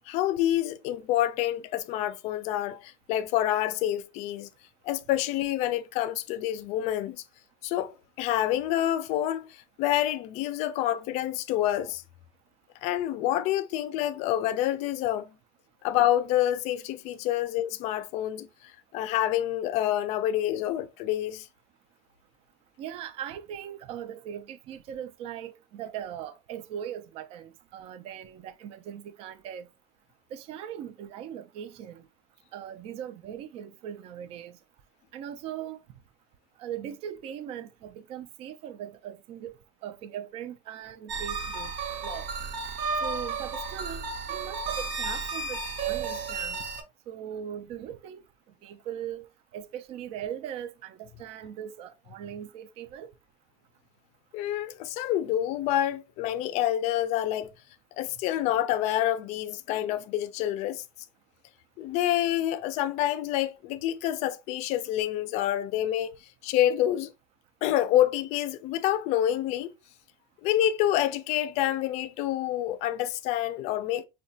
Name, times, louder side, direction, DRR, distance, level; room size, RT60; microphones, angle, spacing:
voice 1, 0.1-4.5 4.8-7.2 7.6-7.9 8.2-12.0 12.8-15.3 15.8-18.5 18.9-21.5 54.3-57.5 58.0-60.8 61.8-66.2 66.4-67.1 67.6-69.7 70.4-74.1, left 12 dB, 60° left, 0.4 m, -27 dB
voice 2, 22.8-29.7 30.3-32.0 32.5-34.6 35.1-35.8 36.6-39.6 39.8-41.7 42.0-42.3 43.0-46.7 47.1-48.2 48.6-53.1, right 9 dB, 50° right, 0.4 m, -39 dB
sound 1, 41.1-46.8, right 4 dB, 80° right, 0.8 m, -33 dB
4.7 x 2.2 x 2.6 m
cardioid pair, 150°, 13 cm